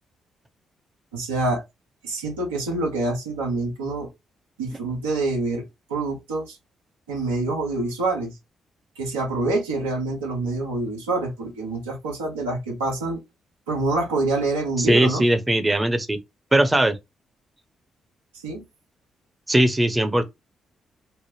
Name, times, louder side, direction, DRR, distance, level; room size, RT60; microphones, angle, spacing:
voice 1, 1.1-1.6 2.0-4.1 4.6-5.6 5.9-6.6 7.1-8.3 9.0-13.2 13.7-15.2 18.4-18.6, right 2 dB, 90° right, 1.0 m, -26 dB
voice 2, 14.8-16.2 16.5-17.0 19.5-20.2, right 1 dB, 20° right, 0.7 m, -19 dB
3.3 x 2.1 x 3.1 m
hypercardioid pair, 40°, 0 cm